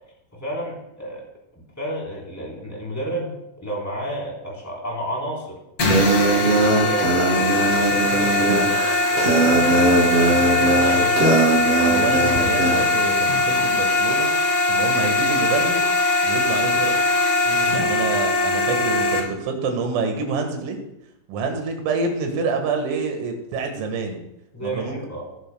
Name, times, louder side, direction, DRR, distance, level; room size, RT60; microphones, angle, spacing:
voice 1, 0.3-1.2 1.8-3.3 3.6-5.6 6.0-6.6 6.8-8.7 9.1-11.1 17.4-17.8 24.5-25.2, right 1 dB, 5° left, -4 dB, 2.6 m, -31 dB
sound 1, 5.8-19.2, left 2 dB, 65° left, 1.4 m, -21 dB
sound 2, 5.8-12.8, right 2 dB, 40° right, 2.9 m, -20 dB
voice 2, 11.8-14.3 14.7-15.8 16.2-16.9 17.7-20.8 21.3-24.2 24.6-25.0, right 4 dB, 80° right, 4 dB, 4.2 m, -27 dB
18.0 x 11.0 x 2.3 m, 0.84 s
omnidirectional pair, 5.9 m